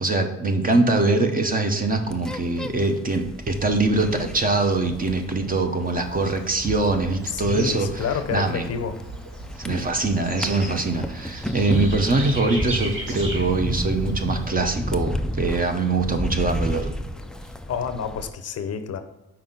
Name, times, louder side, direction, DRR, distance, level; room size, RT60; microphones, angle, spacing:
voice 1, 0.0-8.0 8.3-8.7 9.6-16.9, right 3 dB, 30° right, 5 dB, 0.9 m, -23 dB
sound 1, 1.8-18.3, equal, ahead, 0.3 m, -32 dB
Bird / Insect, 5.9-14.5, right 1 dB, 85° right, 2.3 m, -37 dB
voice 2, 7.3-9.0 17.7-19.0, left 7 dB, 55° left, 9 dB, 0.7 m, -29 dB
5.8 x 4.4 x 3.9 m, 0.95 s
cardioid pair, 90°, 30 cm